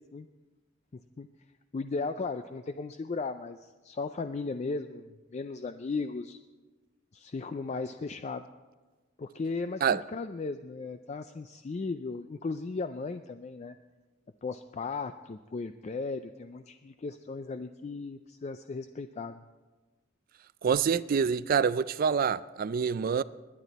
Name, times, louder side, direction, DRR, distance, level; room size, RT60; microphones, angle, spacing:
voice 1, 0.9-1.3 1.7-6.4 7.1-8.5 9.2-13.8 14.4-19.4, left 4 dB, 35° left, 0.3 m, -36 dB
voice 2, 20.6-23.2, right 6 dB, 45° right, 0.3 m, -26 dB
21.0 x 9.8 x 4.1 m
head